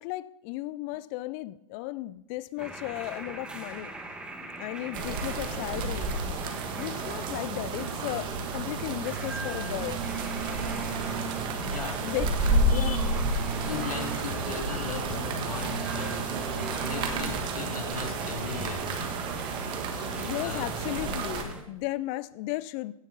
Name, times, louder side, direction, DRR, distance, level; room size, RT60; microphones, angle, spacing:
voice 1, 0.0-3.9 4.6-6.2 6.8-10.0 12.0-13.2 20.2-22.9, left 18 dB, 25° left, 0.4 m, -35 dB
sound 1, 2.6-21.6, right 1 dB, 5° right, 1.2 m, -42 dB
sound 2, 4.9-21.4, right 2 dB, 25° right, 1.4 m, -31 dB
sound 3, 9.7-17.7, right 6 dB, 80° right, 2.9 m, -38 dB
voice 2, 11.6-12.1 12.7-13.0 13.6-19.1 20.2-20.7, left 5 dB, 80° left, 2.5 m, -38 dB
16.5 x 7.2 x 3.9 m
hypercardioid pair, 135°, 19 cm